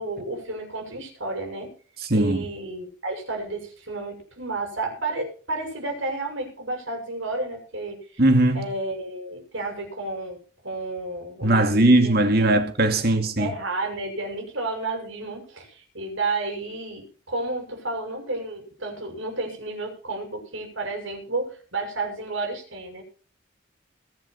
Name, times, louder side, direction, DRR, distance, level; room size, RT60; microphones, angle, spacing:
voice 1, 0.0-1.7 2.1-8.2 8.5-10.4 10.6-12.1 12.4-12.6 13.1-23.0, right 2 dB, 70° right, 6.7 m, -31 dB
voice 2, 2.1-2.4 8.2-8.7 11.4-13.5, right 1 dB, 50° right, 2.5 m, -19 dB
22.5 x 7.9 x 4.5 m
head